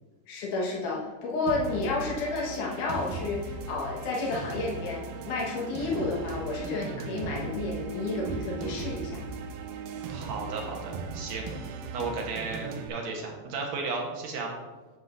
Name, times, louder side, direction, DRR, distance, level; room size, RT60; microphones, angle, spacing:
voice 1, 0.3-9.2, left 3 dB, 65° left, -3 dB, 2.9 m, -31 dB
sound 1, 1.5-12.9, right 4 dB, 90° right, 2.5 m, -38 dB
voice 2, 10.1-11.4 11.9-14.5, right 4 dB, 60° right, 0 dB, 2.0 m, -34 dB
9.4 x 7.6 x 2.6 m, 1.2 s
omnidirectional pair, 4.0 m